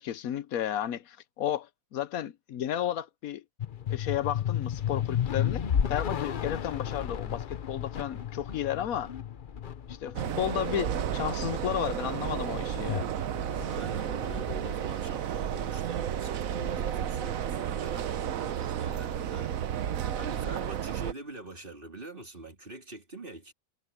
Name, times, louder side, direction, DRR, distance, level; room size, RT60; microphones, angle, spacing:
voice 1, 0.0-3.4 3.9-9.1 9.9-13.1, left 11 dB, 80° left, 1.2 m, -33 dB
sound 1, 3.6-16.1, left 9 dB, 45° left, 0.8 m, -34 dB
sound 2, 10.2-21.1, right 9 dB, 75° right, 1.2 m, -32 dB
voice 2, 13.5-23.5, right 3 dB, 40° right, 3.9 m, -44 dB
omnidirectional pair, 1.5 m